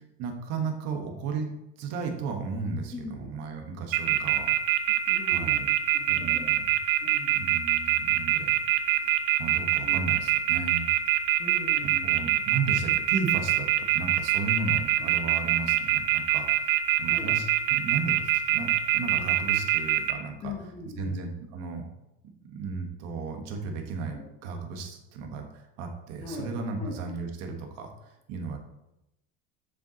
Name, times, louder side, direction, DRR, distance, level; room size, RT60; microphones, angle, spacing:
voice 1, 0.2-1.5 1.8-4.5 5.2-5.7 6.1-6.7 7.3-8.5 9.0-9.1 9.4-10.9 12.0-20.5 21.0-21.9 22.5-27.9 28.3-28.6, right 4 dB, 55° right, 3 dB, 1.3 m, -34 dB
voice 2, 2.9-3.3 5.1-5.7 5.9-6.6 7.0-7.4 9.8-10.0 11.4-12.1 15.0-15.1 17.0-17.3 19.0-19.3 20.4-21.2 24.1-24.2 26.2-26.5 26.8-27.0, left 3 dB, 20° left, -2 dB, 1.0 m, -40 dB
sound 1, 3.9-20.1, right 14 dB, 80° right, 0.8 m, -23 dB
7.8 x 6.9 x 2.9 m, 0.89 s
cardioid pair, 155°, 31 cm